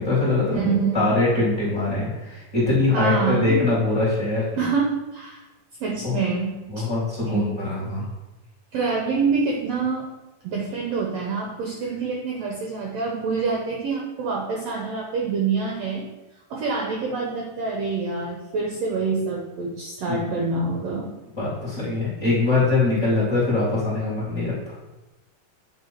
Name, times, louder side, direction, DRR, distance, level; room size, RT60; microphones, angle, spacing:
voice 1, 0.0-0.6 0.9-4.6 6.0-6.2 6.7-8.0 20.1-20.3 21.4-24.8, left 3 dB, 25° left, -8 dB, 2.1 m, -23 dB
voice 2, 0.5-1.1 2.9-3.6 4.6-5.4 5.8-6.9 7.2-7.5 8.7-10.1 10.4-16.0 16.5-21.1, right 4 dB, 75° right, 0 dB, 1.5 m, -26 dB
8.7 x 3.5 x 4.4 m, 1.0 s
omnidirectional pair, 3.9 m